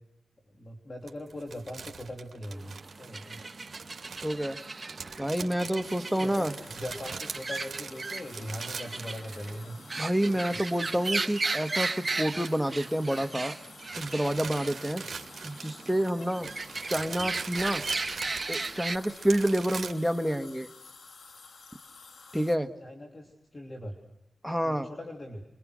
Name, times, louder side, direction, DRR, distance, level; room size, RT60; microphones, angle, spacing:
voice 1, 0.5-3.4 5.2-5.3 6.0-9.8 10.3-10.6 22.8-24.0 24.6-25.4, left 1 dB, 35° left, 2 dB, 3.2 m, -41 dB
sound 1, 1.1-9.8 10.0-13.4 13.6-19.9, right 5 dB, 60° right, 2.5 m, -43 dB
sound 2, 2.5-19.0, right 3 dB, 35° right, 1.3 m, -36 dB
voice 2, 4.2-4.6 5.2-6.5 10.0-11.9 12.2-13.5 14.0-15.0 15.4-16.5 16.9-17.8 18.5-20.7 22.3-22.7 24.4-24.9, right 1 dB, ahead, 7 dB, 1.5 m, -28 dB
sound 3, 5.8-22.6, left 4 dB, 70° left, 2.0 m, -51 dB
29.5 x 23.0 x 6.3 m, 0.86 s
wide cardioid pair, 80°, 0 cm